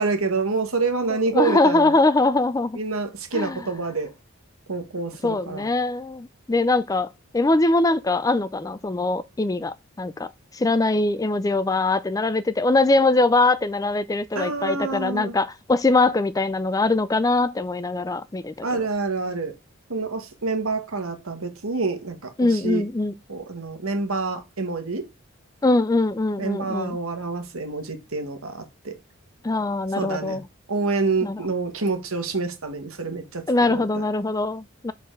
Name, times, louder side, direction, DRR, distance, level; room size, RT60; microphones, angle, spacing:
voice 1, 0.0-1.9 2.7-4.1 4.7-5.6 14.3-15.3 18.6-19.5 19.9-22.8 23.3-25.1 26.4-28.9 30.0-30.4 30.7-34.0, right 3 dB, 80° right, 1.5 m, -27 dB
voice 2, 1.3-2.8 3.3-3.6 5.2-7.1 7.3-10.3 10.5-18.7 22.4-23.1 25.6-27.0 29.4-30.4 31.2-31.4 33.5-34.9, left 2 dB, 15° left, 0.3 m, -22 dB
6.6 x 4.0 x 5.1 m
head